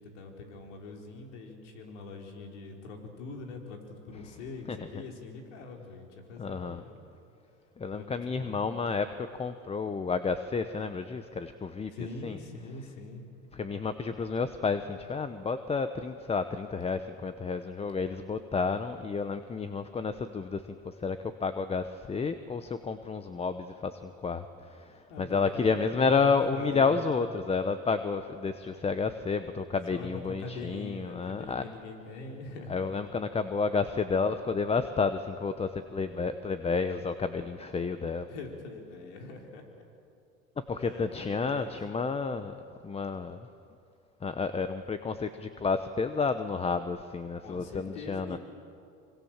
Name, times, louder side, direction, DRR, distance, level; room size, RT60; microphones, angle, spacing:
voice 1, 0.0-7.0 7.9-8.5 11.9-13.2 25.1-27.0 28.7-28.8 29.9-32.9 38.3-39.8 40.8-41.8 47.4-48.4, left 3 dB, 85° left, 2 dB, 4.2 m, -43 dB
voice 2, 6.4-6.8 7.8-11.9 12.2-12.4 13.5-31.6 32.7-38.3 40.7-42.5 42.8-43.5 44.2-48.4, left 4 dB, 15° left, 10 dB, 1.0 m, -31 dB
26.0 x 25.5 x 7.4 m, 2.5 s
supercardioid pair, 110°, 35 cm